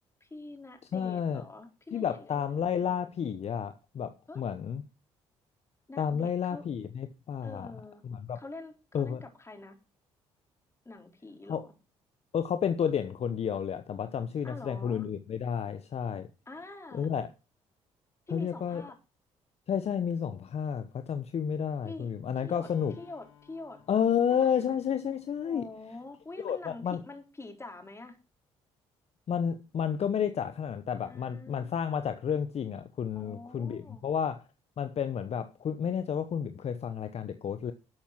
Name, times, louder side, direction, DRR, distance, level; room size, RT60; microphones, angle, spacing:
voice 1, 0.2-3.1 4.3-4.4 5.9-6.7 7.4-8.0 8.3-9.8 10.8-11.7 14.4-15.1 16.5-17.1 18.3-19.0 21.8-22.1 22.4-22.7 23.0-23.8 24.4-24.5 25.4-28.1 31.0-31.8 33.1-34.0, left 2 dB, 20° left, 4.0 m, -46 dB
voice 2, 0.9-1.4 1.9-4.8 6.0-7.7 8.0-8.4 8.9-9.2 11.5-11.7 12.3-16.3 16.9-17.3 18.3-18.9 19.7-23.0 23.9-25.7 26.4-27.0 29.3-34.4 34.8-37.7, left 8 dB, 50° left, 1.0 m, -31 dB
Acoustic guitar, 22.6-26.5, left 9 dB, 90° left, 1.9 m, -61 dB
12.0 x 7.1 x 6.0 m
hypercardioid pair, 60°, 14 cm